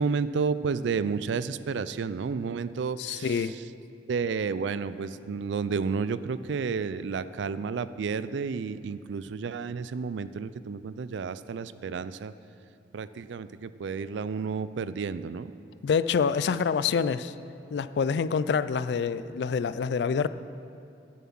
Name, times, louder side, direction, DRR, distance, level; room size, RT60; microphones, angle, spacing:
voice 1, 0.0-3.5 4.1-12.3 12.9-15.5, right 5 dB, 70° right, 14 dB, 0.4 m, -31 dB
voice 2, 3.0-3.5 15.8-17.3 17.7-20.3, left 6 dB, 60° left, 15 dB, 0.3 m, -26 dB
11.0 x 7.3 x 6.0 m, 2.7 s
head